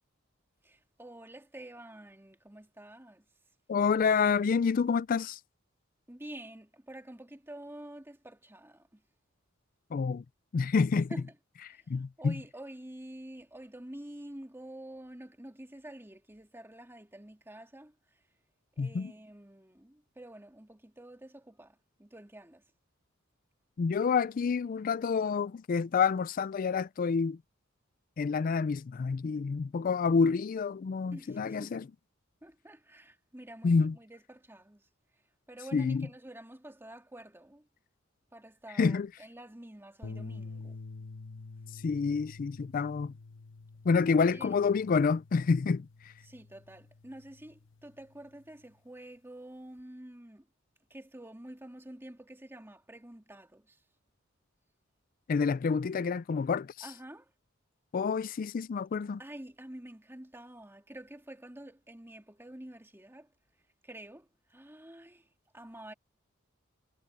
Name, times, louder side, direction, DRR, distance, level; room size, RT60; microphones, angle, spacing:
voice 1, 0.6-3.3 6.1-9.0 11.1-11.4 11.7-11.8 12.2-18.2 18.8-22.6 31.1-31.7 32.4-34.9 35.5-37.7 38.3-40.8 44.1-44.5 46.2-50.5 50.9-53.8 56.8-57.3 59.2-63.3 63.8-65.3 65.5-65.9, right 1 dB, 10° right, 2.2 m, -48 dB
voice 2, 3.7-5.4 9.9-10.2 10.5-11.1 11.9-12.3 18.8-19.1 23.8-27.4 28.2-31.8 33.6-33.9 35.7-36.1 38.8-39.1 41.8-43.1 43.8-45.9 55.3-56.7 57.9-59.2, left 5 dB, 45° left, 0.4 m, -28 dB
sound 1, 40.0-48.4, left 3 dB, 65° left, 1.1 m, -48 dB
head